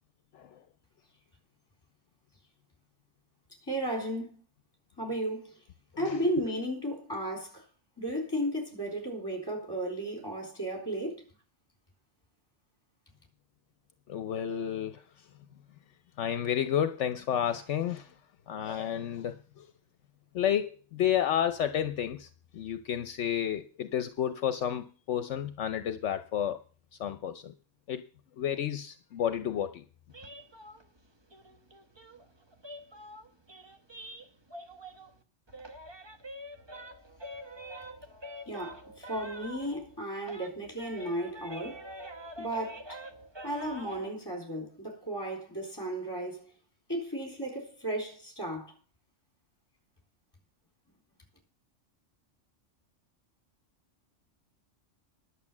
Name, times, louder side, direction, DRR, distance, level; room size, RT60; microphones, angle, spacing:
voice 1, 3.7-4.4 5.0-5.5 6.0-7.6 8.0-11.2 38.5-41.8 42.4-43.0 43.4-46.4 46.9-48.7, right 1 dB, 20° left, 3.7 m, -34 dB
voice 2, 14.1-15.0 16.2-18.1 18.5-19.7 20.3-26.6 27.0-27.5 27.9-28.0 28.4-29.8, left 9 dB, 70° left, 1.0 m, -31 dB
sound 1, 30.1-35.2 35.5-40.0 40.2-44.1, equal, 25° right, 1.0 m, -46 dB
11.0 x 7.2 x 7.3 m
omnidirectional pair, 1.3 m